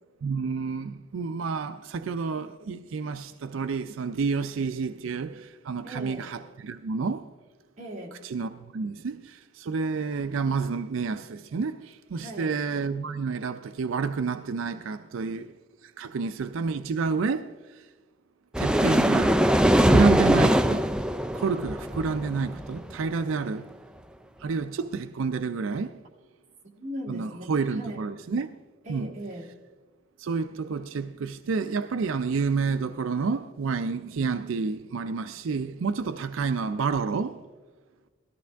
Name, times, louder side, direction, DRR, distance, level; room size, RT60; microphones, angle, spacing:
voice 1, 0.2-7.3 8.2-15.5 15.8-17.9 18.6-19.5 19.8-20.9 21.3-23.7 24.4-26.0 27.1-28.6 28.9-29.1 30.2-37.5, right 5 dB, 80° right, 0.4 m, -29 dB
voice 2, 5.8-6.3 7.8-8.2 12.2-12.5 26.8-28.0 28.8-29.5, equal, 35° right, 2.1 m, -39 dB
sound 1, 18.5-22.9, equal, 5° right, 0.3 m, -22 dB
18.5 x 13.5 x 3.4 m
head